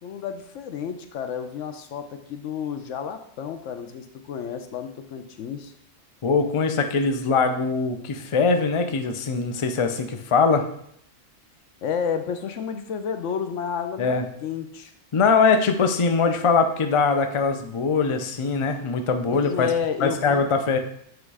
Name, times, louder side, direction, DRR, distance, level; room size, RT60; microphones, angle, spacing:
voice 1, 0.0-5.7 11.8-14.9 19.3-20.4, left 7 dB, 75° left, 8 dB, 1.0 m, -31 dB
voice 2, 6.2-10.7 14.0-14.2 15.1-19.7 20.0-20.8, left 4 dB, 45° left, 6 dB, 0.4 m, -22 dB
7.9 x 3.2 x 4.8 m, 0.69 s
omnidirectional pair, 1.3 m